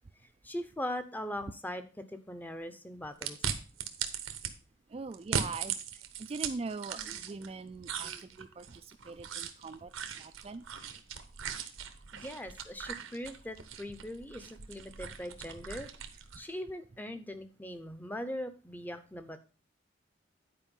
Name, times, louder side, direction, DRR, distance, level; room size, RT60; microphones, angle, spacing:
voice 1, 0.4-3.4 7.0-7.2 8.0-8.2 12.1-15.9 16.3-19.4, left 1 dB, 10° left, 9 dB, 0.7 m, -40 dB
sound 1, 3.2-4.5 5.1-7.5 7.8-16.5, right 7 dB, 85° right, 1.0 m, -39 dB
voice 2, 4.9-5.8 6.2-9.9 10.2-10.6, right 4 dB, 30° right, 9 dB, 0.3 m, -41 dB
9.9 x 4.7 x 5.3 m, 0.36 s
head